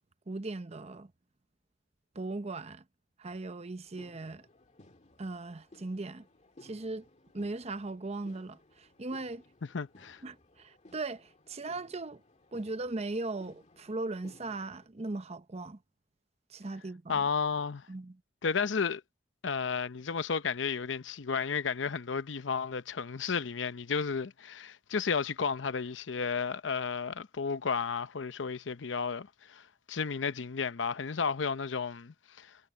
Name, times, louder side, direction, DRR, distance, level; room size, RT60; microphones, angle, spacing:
voice 1, 0.3-1.1 2.1-2.8 3.2-4.5 5.2-6.2 6.6-7.1 7.3-9.4 10.2-12.2 12.5-15.8 16.5-17.2 17.9-18.2, right 2 dB, 35° right, 0.8 m, -38 dB
sound 1, 3.8-14.9, left 2 dB, 40° left, 2.1 m, -59 dB
voice 2, 9.7-10.2 17.1-17.9 18.4-19.0 19.4-32.6, left 5 dB, 80° left, 0.7 m, -33 dB
head